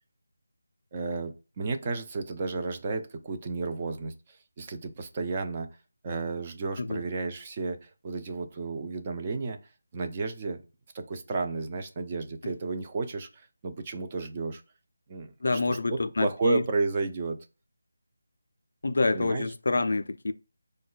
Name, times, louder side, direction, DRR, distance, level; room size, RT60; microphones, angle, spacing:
voice 1, 0.9-5.8 6.0-9.6 9.9-10.6 10.9-14.6 15.1-17.5 19.1-19.5, right 3 dB, 25° right, 0.4 m, -32 dB
voice 2, 15.4-16.6 18.8-20.3, left 3 dB, 65° left, 0.3 m, -27 dB
4.7 x 2.1 x 2.3 m
figure-of-eight pair, 170°, 0 cm